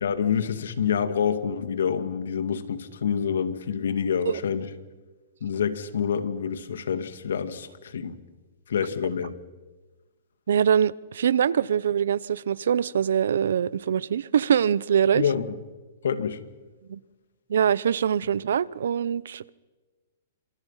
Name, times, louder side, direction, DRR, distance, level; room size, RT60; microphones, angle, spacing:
voice 1, 0.0-4.7 5.4-8.2 8.7-9.3 15.1-15.6 16.0-16.4, left 7 dB, 80° left, 2.3 m, -27 dB
voice 2, 10.5-15.2 16.9-17.0 17.5-19.5, right 8 dB, 80° right, 0.8 m, -23 dB
30.0 x 26.5 x 5.8 m
hypercardioid pair, 145°, 0 cm